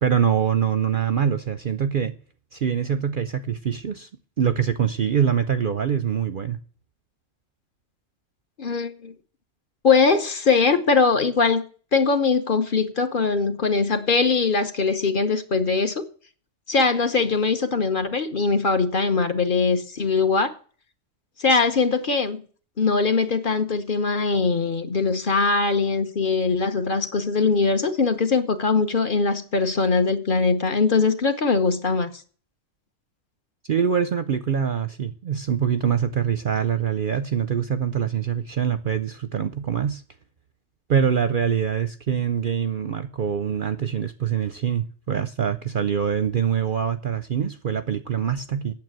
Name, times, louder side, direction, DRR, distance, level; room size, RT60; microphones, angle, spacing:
voice 1, 0.0-2.1 2.5-4.1 4.4-6.6 33.6-40.0 40.9-48.7, right 8 dB, 55° right, 0.6 m, -24 dB
voice 2, 8.6-9.1 9.8-11.6 11.9-16.0 16.7-20.5 21.4-22.4 22.8-32.1, left 4 dB, 45° left, 1.1 m, -21 dB
9.2 x 7.3 x 7.5 m
omnidirectional pair, 1.4 m